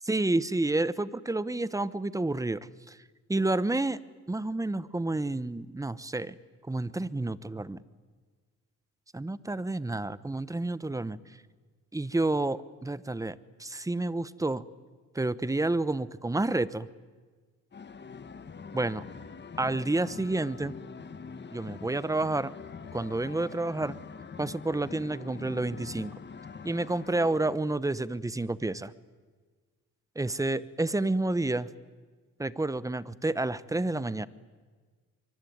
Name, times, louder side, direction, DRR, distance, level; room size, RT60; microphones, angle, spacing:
voice 1, 0.1-3.0 3.3-4.0 4.3-6.3 6.7-7.8 9.1-11.2 11.9-14.6 15.1-16.9 18.7-19.0 19.6-20.7 21.5-22.5 22.9-24.0 24.4-26.1 26.6-28.9 30.2-31.7 32.4-34.3, right 2 dB, 10° right, 17 dB, 1.0 m, -29 dB
sound 1, 17.7-27.6, left 5 dB, 35° left, 1.7 m, -44 dB
24.5 x 24.0 x 9.6 m, 1.5 s
cardioid pair, 90°, 30 cm